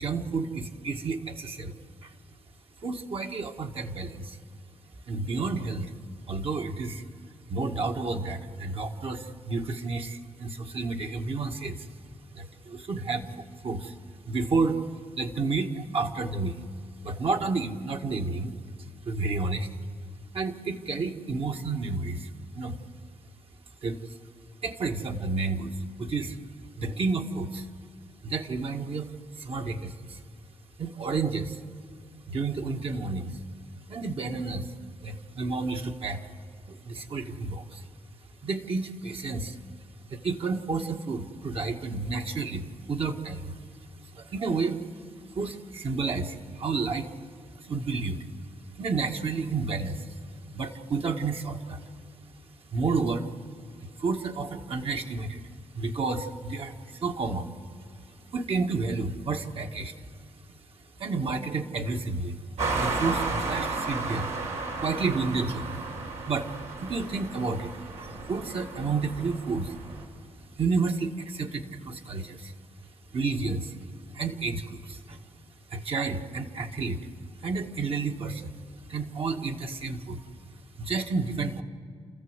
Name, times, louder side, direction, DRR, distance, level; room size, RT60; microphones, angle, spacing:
voice 1, 0.0-2.1 2.8-4.4 5.1-5.9 6.3-7.0 7.5-11.9 12.3-13.9 14.3-14.8 15.2-16.6 17.0-18.5 19.1-19.7 20.3-22.8 23.8-24.1 24.6-26.4 26.8-27.7 28.2-29.1 29.4-30.2 30.8-31.6 32.3-33.4 33.9-34.7 35.0-36.3 36.7-37.9 38.4-39.6 40.1-43.5 44.1-44.8 45.3-47.1 47.6-48.3 48.7-50.1 50.5-51.8 52.7-53.3 53.8-55.5 55.7-57.5 58.3-59.9 61.0-62.4 62.7-64.3 64.8-65.8 66.3-69.8 70.6-72.5 73.1-73.8 74.1-75.2 75.7-77.1 77.4-78.5 78.9-80.2 80.8-81.6, right 4 dB, 55° right, 3 dB, 1.7 m, -31 dB
sound 1, 62.6-70.0, right 3 dB, 85° right, 4.4 m, -33 dB
29.5 x 14.5 x 8.1 m, 2.2 s
cardioid pair, 85°, 12 cm